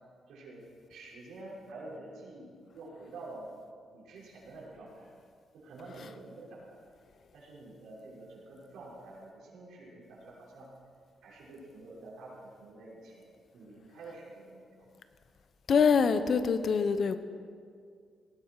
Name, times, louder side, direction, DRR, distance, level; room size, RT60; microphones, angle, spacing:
voice 1, 0.3-0.6 0.9-3.5 3.9-5.1 5.5-6.8 7.3-10.7 11.2-14.9, right 2 dB, 85° right, -5 dB, 5.8 m, -48 dB
voice 2, 15.7-17.2, left 6 dB, 45° left, 11 dB, 0.8 m, -24 dB
19.0 x 16.0 x 4.8 m, 2.1 s
cardioid pair, 160°, 0 cm